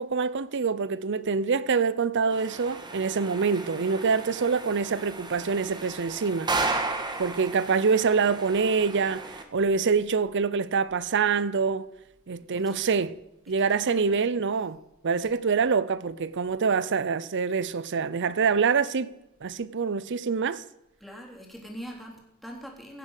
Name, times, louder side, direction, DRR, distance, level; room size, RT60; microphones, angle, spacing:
voice 1, 0.0-6.5 7.2-11.9 12.3-13.1 13.5-14.8 15.0-19.1 19.4-20.6, right 5 dB, 55° right, 0.6 m, -25 dB
sound 1, 2.3-9.4, right 3 dB, 20° right, 1.6 m, -34 dB
voice 2, 12.5-13.0 13.6-14.2 15.2-15.3 21.0-23.0, equal, ahead, 3.4 m, -43 dB
17.0 x 7.4 x 8.1 m
head